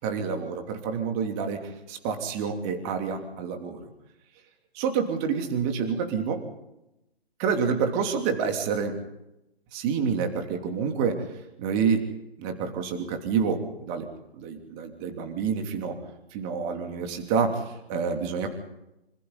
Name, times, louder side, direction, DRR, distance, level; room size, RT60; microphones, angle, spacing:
voice 1, 0.0-3.8 4.7-6.4 7.4-8.9 9.7-11.2 11.6-12.1 12.4-14.1 14.3-16.0 16.3-18.5, right 6 dB, 25° right, 5 dB, 3.0 m, -28 dB
26.5 x 26.0 x 4.0 m, 0.88 s
figure-of-eight pair, 135°, 31 cm